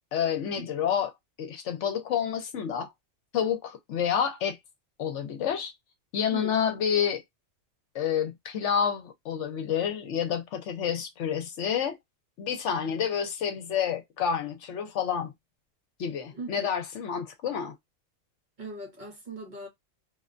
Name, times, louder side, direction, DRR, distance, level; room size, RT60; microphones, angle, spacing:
voice 1, 0.1-1.1 1.4-2.9 3.3-4.6 5.0-5.7 6.1-7.2 7.9-12.0 12.4-15.3 16.0-17.7, left 8 dB, 70° left, 0.9 m, -29 dB
voice 2, 6.3-6.6 16.3-16.8 18.6-19.7, right 2 dB, 40° right, 0.9 m, -40 dB
2.4 x 2.1 x 2.4 m
omnidirectional pair, 1.3 m